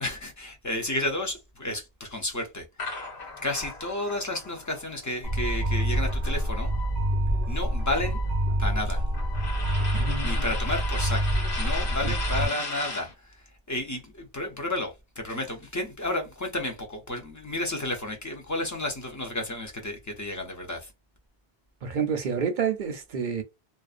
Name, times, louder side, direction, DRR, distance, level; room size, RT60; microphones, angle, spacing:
voice 1, 0.0-3.1 3.4-6.7 7.5-8.2 8.6-9.0 10.2-13.4 13.7-20.9, left 1 dB, 30° left, 0.3 m, -32 dB
sound 1, 2.8-6.9 7.2-13.1, left 3 dB, 85° left, 1.5 m, -37 dB
sound 2, 5.2-12.4, right 1 dB, 50° left, 0.8 m, -27 dB
voice 2, 9.9-10.5 12.0-12.1 21.8-23.4, right 6 dB, 60° right, 0.6 m, -29 dB
2.4 x 2.2 x 2.4 m
omnidirectional pair, 1.0 m